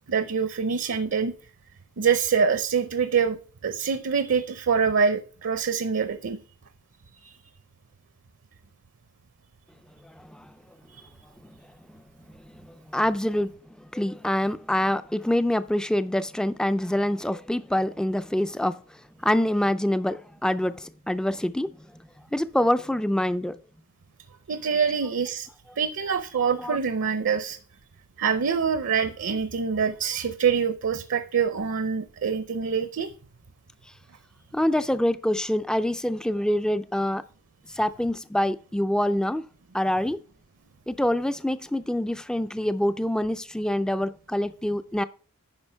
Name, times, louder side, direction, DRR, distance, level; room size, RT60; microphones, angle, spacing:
voice 1, 0.1-1.3 2.0-6.4 7.2-7.4 24.5-25.5 25.8-27.6 28.2-33.1, right 6 dB, 60° right, 0.6 m, -25 dB
voice 2, 10.0-10.5 11.9-12.0 12.6-13.5 13.8-18.8 19.2-21.8 22.3-23.6 26.6-26.8 34.5-37.2 37.7-39.5 39.7-40.2 40.9-45.0, left 1 dB, 5° left, 0.3 m, -25 dB
9.7 x 5.5 x 4.5 m
head